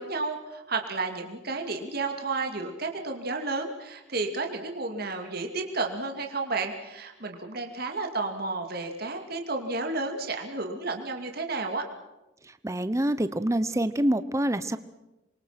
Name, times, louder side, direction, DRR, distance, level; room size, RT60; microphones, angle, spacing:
voice 1, 0.0-11.8, right 3 dB, 50° right, 4 dB, 2.6 m, -32 dB
voice 2, 12.6-14.8, right 1 dB, 15° right, 12 dB, 0.8 m, -26 dB
27.5 x 23.5 x 6.0 m, 0.99 s
head